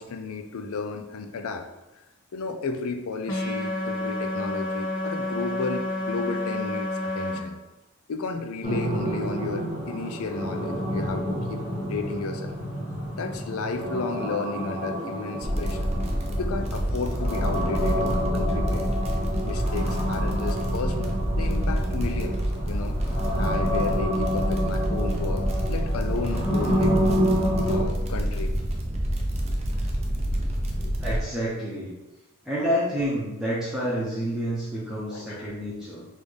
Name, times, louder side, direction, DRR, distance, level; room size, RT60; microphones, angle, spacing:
voice 1, 0.0-1.7 2.3-7.6 8.1-11.6 11.9-12.6 13.2-15.9 16.4-18.9 19.4-22.4 22.7-23.0 23.4-26.9 27.7-28.5 30.8-30.9 32.6-32.7 35.1-35.5, left 4 dB, 85° left, 7 dB, 0.5 m, -33 dB
sound 1, 3.3-7.4, left 2 dB, 65° left, 1.3 m, -29 dB
sound 2, 8.6-27.8, equal, 25° left, 1.1 m, -29 dB
sound 3, 15.4-31.2, equal, 30° right, 0.5 m, -27 dB
voice 2, 31.0-31.9 32.4-36.0, equal, ahead, -9 dB, 0.8 m, -28 dB
4.2 x 3.5 x 3.3 m, 1.0 s
head